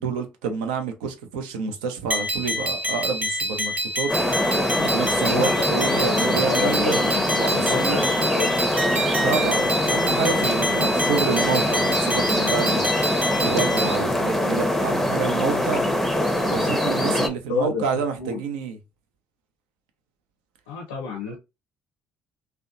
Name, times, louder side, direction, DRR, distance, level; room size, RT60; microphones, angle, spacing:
voice 1, 0.0-4.1 4.8-7.0 7.4-8.0 9.2-12.9 13.4-15.8 16.3-18.8, right 5 dB, 80° right, 0.5 m, -28 dB
sound 1, 2.1-13.9, equal, 35° right, 0.9 m, -27 dB
sound 2, 4.1-17.3, left 1 dB, 5° left, 0.6 m, -23 dB
voice 2, 5.2-7.2 7.5-8.5 15.5-15.9 16.9-17.2 17.5-18.4 20.7-21.4, left 5 dB, 85° left, 0.5 m, -31 dB
2.7 x 2.1 x 2.4 m
hypercardioid pair, 55°, 4 cm